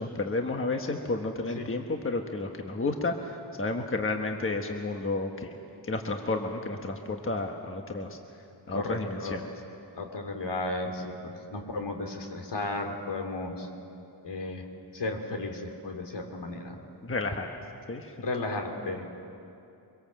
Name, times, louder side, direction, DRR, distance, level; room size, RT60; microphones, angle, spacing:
voice 1, 0.0-3.1 3.6-5.5 5.8-8.2 8.7-9.4 17.0-17.5 17.9-18.1, left 3 dB, 30° left, 4 dB, 1.3 m, -31 dB
voice 2, 8.7-9.4 10.0-13.7 14.2-14.7 14.9-16.8 18.2-19.0, left 2 dB, 75° left, 3 dB, 2.9 m, -34 dB
24.5 x 23.5 x 7.6 m, 2.7 s
wide cardioid pair, 150°, 42 cm